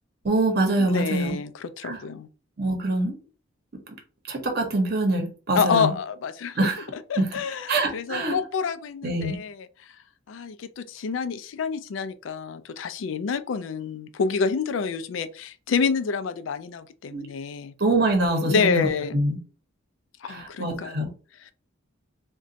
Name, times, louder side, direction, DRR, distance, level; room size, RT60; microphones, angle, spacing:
voice 1, 0.2-1.4 1.8-2.0 2.6-3.2 4.3-5.9 6.6-6.8 7.2-7.3 7.7-8.4 9.0-9.4 17.1-17.3 17.8-18.9 19.1-19.4 20.3-21.1, right 2 dB, 55° right, 0.8 m, -24 dB
voice 2, 0.8-2.3 5.6-6.7 7.1-10.0 10.3-17.7 18.4-19.2 20.2-21.1 21.4-21.5, left 5 dB, 75° left, 0.4 m, -28 dB
2.5 x 2.2 x 3.9 m
head